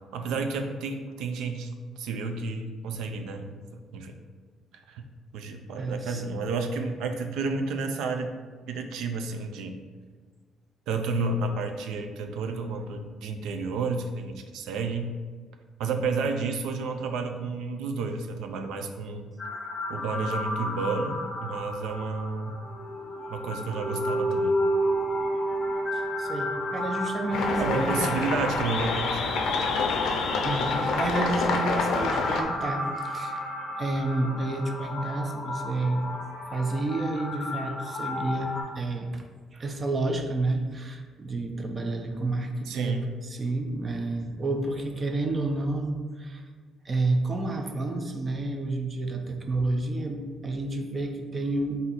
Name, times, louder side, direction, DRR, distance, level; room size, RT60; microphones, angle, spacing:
voice 1, 0.1-4.2 4.9-5.0 5.3-8.3 8.7-9.8 10.9-15.1 15.8-19.3 19.9-22.6 23.3-24.6 27.6-29.2 42.7-43.1, right 4 dB, 90° right, 5 dB, 0.4 m, -31 dB
voice 2, 5.8-6.2 25.9-28.1 30.4-33.4 33.8-36.1 36.5-39.2 39.5-46.5 46.8-51.8, right 2 dB, 25° right, 4 dB, 0.4 m, -30 dB
sound 1, 19.4-38.6, left 2 dB, 20° left, 0.7 m, -35 dB
sound 2, 22.7-28.3, right 1 dB, 60° right, 0.9 m, -30 dB
sound 3, 27.3-32.4, left 4 dB, 75° left, 0.5 m, -27 dB
4.2 x 2.6 x 4.0 m, 1.5 s
cardioid pair, 150°, 0 cm